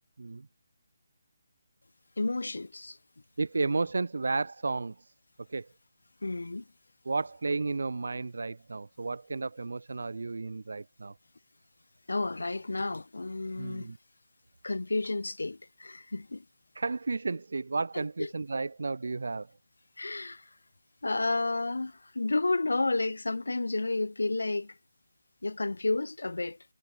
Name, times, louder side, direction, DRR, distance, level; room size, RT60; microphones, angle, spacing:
voice 1, 2.2-3.0 6.2-6.6 12.1-13.9 14.6-16.4 17.9-18.3 20.0-20.5 21.0-24.8 25.4-26.6, left 2 dB, 70° left, 6.1 m, -31 dB
voice 2, 3.4-5.1 5.5-5.7 7.1-11.1 13.6-14.0 16.8-19.5, right 3 dB, 65° right, 7.0 m, -32 dB
figure-of-eight pair, 150°, 0 cm